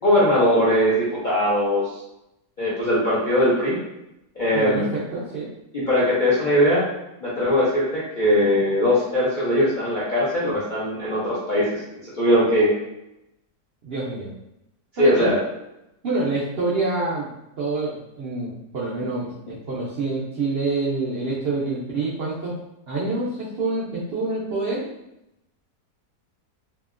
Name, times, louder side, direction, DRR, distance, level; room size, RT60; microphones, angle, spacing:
voice 1, 0.0-1.9 2.6-3.8 4.4-4.9 5.7-6.8 7.2-11.8 12.2-12.7 14.9-15.4, equal, 60° left, -8 dB, 0.5 m, -20 dB
voice 2, 4.5-5.5 13.8-14.3 15.0-15.3 16.0-17.3 17.6-22.5 22.9-24.9, right 3 dB, 70° right, -7 dB, 0.5 m, -27 dB
2.8 x 2.7 x 2.4 m, 0.89 s
omnidirectional pair, 1.7 m